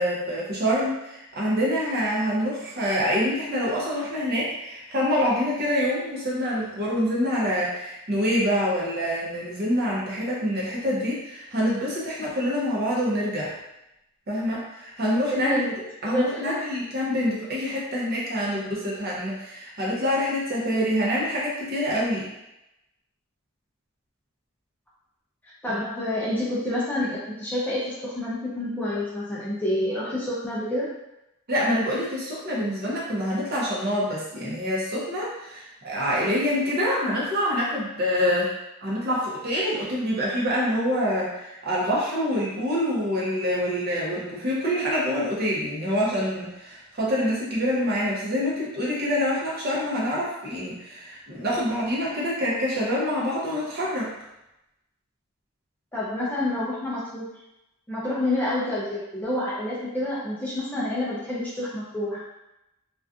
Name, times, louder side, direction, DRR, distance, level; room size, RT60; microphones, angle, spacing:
voice 1, 0.0-13.5 14.3-15.6 16.0-22.3 25.7-25.8 31.5-38.5 38.8-54.1, equal, 45° right, -5 dB, 0.7 m, -26 dB
voice 2, 15.3-16.6 25.6-30.9 55.9-57.3 57.9-62.2, left 1 dB, 10° left, -8 dB, 0.5 m, -28 dB
2.5 x 2.3 x 2.3 m, 0.90 s
head